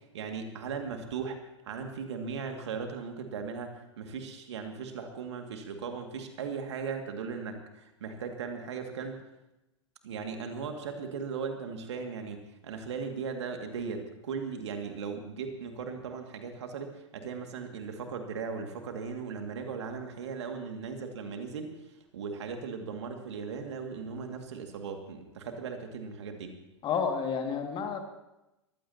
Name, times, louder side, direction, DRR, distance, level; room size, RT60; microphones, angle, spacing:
voice 1, 0.0-1.4 1.6-9.2 10.0-26.5, right 5 dB, 65° right, 4 dB, 2.2 m, -38 dB
voice 2, 26.8-28.0, left 6 dB, 30° left, 4 dB, 2.3 m, -30 dB
22.0 x 15.5 x 2.9 m, 0.93 s
figure-of-eight pair, 95°, 15 cm